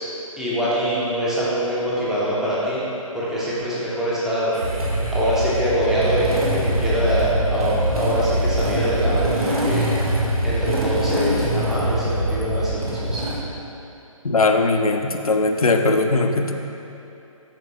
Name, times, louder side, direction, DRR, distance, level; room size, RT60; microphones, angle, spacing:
voice 1, 0.4-2.8 3.1-4.6 5.1-9.9 10.4-13.3, equal, ahead, -9 dB, 0.7 m, -24 dB
Motorcycle / Engine starting, 4.5-13.4, right 1 dB, 90° right, 1.0 m, -23 dB
voice 2, 14.2-16.5, left 3 dB, 85° left, 5 dB, 0.5 m, -19 dB
7.1 x 5.1 x 2.8 m, 2.9 s
figure-of-eight pair, 140°, 18 cm